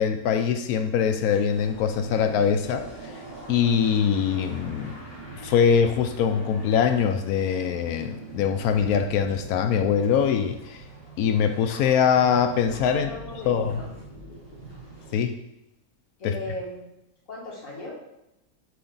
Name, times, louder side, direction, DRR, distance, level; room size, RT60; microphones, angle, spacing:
voice 1, 0.0-3.1 3.5-4.9 5.4-10.8 11.2-13.1 13.5-13.9 15.1-15.3 16.2-16.3, left 7 dB, 80° left, 7 dB, 1.0 m, -23 dB
sound 1, 1.5-15.2, right 2 dB, 45° left, 1.5 m, -42 dB
voice 2, 12.9-13.9 16.2-16.9 17.3-17.9, left 2 dB, 60° left, -5 dB, 2.3 m, -37 dB
7.8 x 3.4 x 3.9 m, 0.89 s
omnidirectional pair, 1.6 m